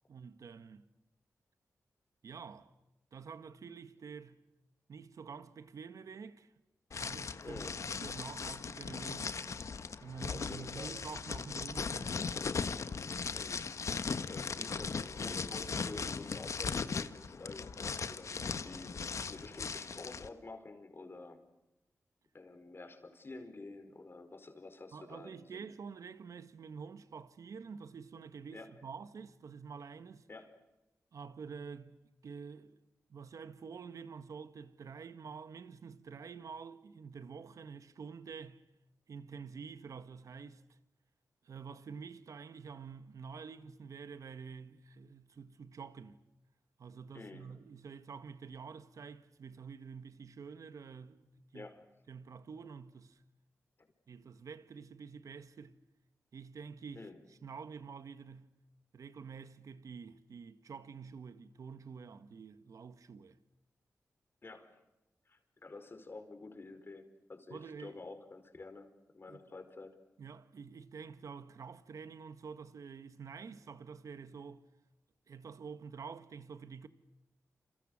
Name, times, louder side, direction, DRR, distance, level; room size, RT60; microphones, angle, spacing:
voice 1, 0.1-0.9 2.2-2.7 3.1-4.4 4.9-6.5 7.0-9.4 10.0-12.3 24.9-30.3 31.1-32.8 33.1-38.6 39.1-40.8 41.4-46.2 46.8-51.7 52.1-53.2 54.1-55.8 56.3-58.5 58.9-63.4 67.5-68.0 69.3-69.4 70.2-74.6 75.3-76.9, right 6 dB, 75° right, 1.7 m, -48 dB
sound 1, 6.9-20.3, left 5 dB, 60° left, 1.4 m, -38 dB
voice 2, 7.4-7.8 10.3-11.0 13.3-13.6 13.9-18.9 19.3-21.4 22.3-25.7 28.5-28.8 30.3-30.6 47.1-47.5 51.5-51.8 56.9-57.2 64.4-64.8 65.2-69.9, left 3 dB, 40° left, 5.0 m, -49 dB
29.0 x 28.0 x 6.7 m
cardioid pair, 75°, 6 cm